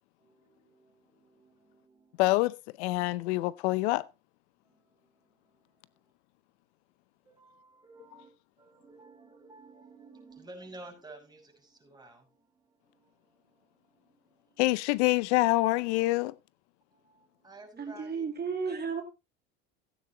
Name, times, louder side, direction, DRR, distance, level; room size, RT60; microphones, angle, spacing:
voice 1, 0.2-2.2 4.6-5.4 7.2-8.3 8.6-14.6 16.9-18.3, right 2 dB, 10° right, 6.1 m, -53 dB
voice 2, 2.2-4.0 14.6-16.3, left 20 dB, 75° left, 0.7 m, -26 dB
voice 3, 17.8-19.0, right 5 dB, 30° right, 2.5 m, -33 dB
16.5 x 9.3 x 3.0 m
supercardioid pair, 90°, 33 cm